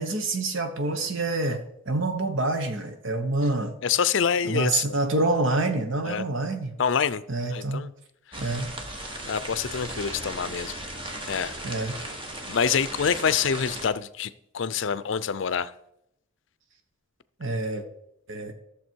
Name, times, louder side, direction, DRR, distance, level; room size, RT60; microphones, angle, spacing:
voice 1, 0.0-3.8 4.4-6.7 7.3-7.9 8.4-8.7 11.6-12.0 17.4-17.8 18.3-18.5, right 2 dB, 65° right, 1.1 m, -27 dB
voice 2, 3.8-5.0 6.0-6.2 6.8-7.2 7.5-7.9 8.3-8.6 9.2-10.7 11.3-11.5 12.5-15.7, left 7 dB, 60° left, 0.5 m, -26 dB
sound 1, 8.3-13.9, right 1 dB, 25° right, 1.3 m, -37 dB
14.0 x 6.9 x 4.6 m
head